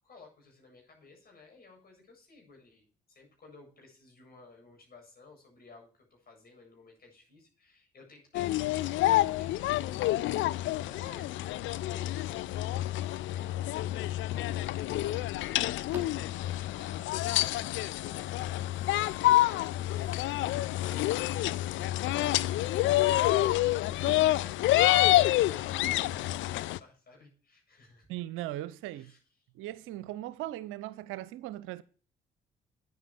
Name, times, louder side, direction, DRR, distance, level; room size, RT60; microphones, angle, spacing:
voice 1, 0.0-11.3 11.8-28.1 28.9-29.2, left 3 dB, 45° left, 7.9 m, -56 dB
sound 1, 8.3-26.8, left 15 dB, 65° left, 0.5 m, -28 dB
sound 2, 14.9-26.0, right 1 dB, 10° right, 3.4 m, -55 dB
voice 2, 28.1-29.1 29.5-31.8, right 15 dB, 75° right, 0.6 m, -38 dB
9.4 x 8.2 x 7.1 m
hypercardioid pair, 50°, 21 cm